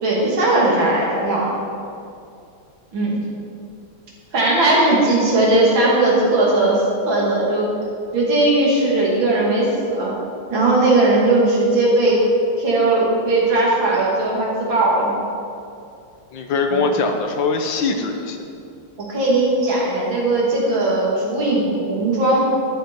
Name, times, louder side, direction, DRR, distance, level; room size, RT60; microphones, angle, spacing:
voice 1, 0.0-1.5 2.9-3.2 4.3-7.7 8.1-10.1 10.5-12.2 12.6-15.1 16.7-16.8 19.1-22.4, right 2 dB, 85° right, -4 dB, 3.3 m, -18 dB
voice 2, 16.3-18.4, left 4 dB, 75° left, 4 dB, 1.8 m, -22 dB
12.0 x 10.5 x 4.6 m, 2.5 s
omnidirectional pair, 2.1 m